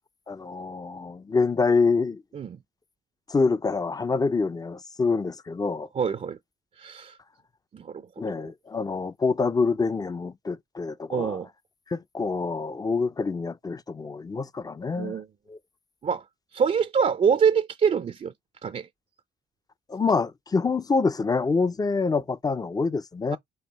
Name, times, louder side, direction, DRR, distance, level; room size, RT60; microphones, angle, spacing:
voice 1, 0.3-2.2 3.3-5.9 8.2-11.4 11.9-15.2 15.5-15.6 19.9-23.4, left 4 dB, 20° left, 0.4 m, -26 dB
voice 2, 5.9-6.4 6.8-7.2 7.7-8.1 11.1-11.5 15.0-15.3 16.0-16.2 16.5-18.3 18.6-18.9 23.3-23.4, right 6 dB, 35° right, 0.5 m, -25 dB
5.5 x 2.4 x 4.0 m
cardioid pair, 90°, 20 cm